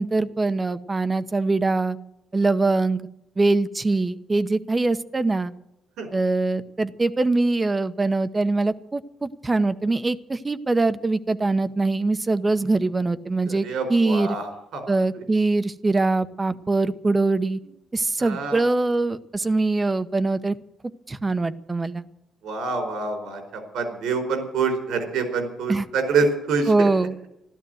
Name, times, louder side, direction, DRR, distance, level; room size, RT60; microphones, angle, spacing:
voice 1, 0.0-2.0 2.3-3.0 3.4-5.5 6.1-14.3 14.9-17.6 17.9-20.6 21.1-22.0 25.7-25.8 26.7-27.1, right 3 dB, 25° right, 13 dB, 0.9 m, -23 dB
voice 2, 13.4-14.8 15.1-15.2 18.2-18.6 22.4-26.9, right 4 dB, 85° right, 6 dB, 4.5 m, -26 dB
14.0 x 12.5 x 7.9 m, 0.85 s
cardioid pair, 90°, 0 cm